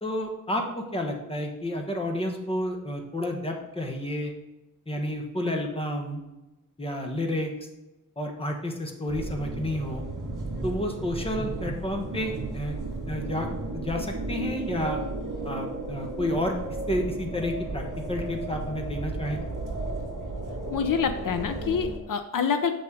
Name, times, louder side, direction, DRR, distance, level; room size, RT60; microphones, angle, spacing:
voice 1, 0.0-4.3 4.9-6.2 6.8-7.5 8.2-10.0 10.6-12.7 13.1-13.5 13.7-15.0 15.4-16.5 16.9-19.4, left 1 dB, 15° left, 2 dB, 1.3 m, -30 dB
sound 1, 9.1-22.0, right 2 dB, 70° right, 2.3 m, -34 dB
voice 2, 20.7-22.7, left 6 dB, 75° left, 8 dB, 0.6 m, -26 dB
7.4 x 6.1 x 4.7 m, 1.0 s
wide cardioid pair, 140°, 33 cm